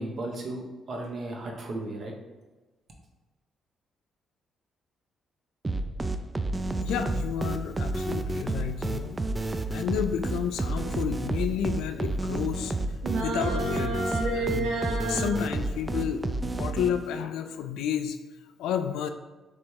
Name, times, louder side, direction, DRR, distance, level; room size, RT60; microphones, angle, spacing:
voice 1, 0.0-2.1, right 1 dB, 55° right, 1 dB, 0.9 m, -35 dB
sound 1, 5.6-17.2, right 2 dB, 25° right, 0.4 m, -31 dB
voice 2, 6.8-9.2 9.7-12.7 13.2-14.8 15.1-18.2 18.6-19.1, left 8 dB, 80° left, 8 dB, 0.3 m, -31 dB
sound 2, 13.0-15.4, right 2 dB, 80° right, 0.7 m, -30 dB
3.3 x 3.1 x 4.4 m, 1.2 s
supercardioid pair, 55°, 0 cm